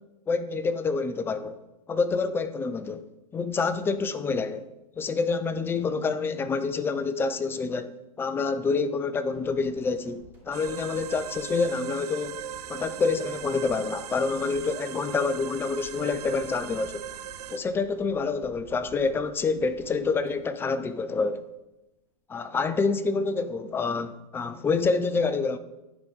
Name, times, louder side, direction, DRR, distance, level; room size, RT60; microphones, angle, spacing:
voice 1, 0.3-1.6 1.9-3.0 3.3-4.7 5.0-7.9 8.2-12.4 12.7-17.1 17.5-21.4 22.3-25.6, left 4 dB, 10° left, 0.4 m, -27 dB
sound 1, 9.3-21.5 21.8-22.0, left 2 dB, 10° right, 3.0 m, -53 dB
sound 2, 10.5-17.6, right 11 dB, 85° right, 0.4 m, -39 dB
9.7 x 4.9 x 4.0 m
hypercardioid pair, 125°, 20 cm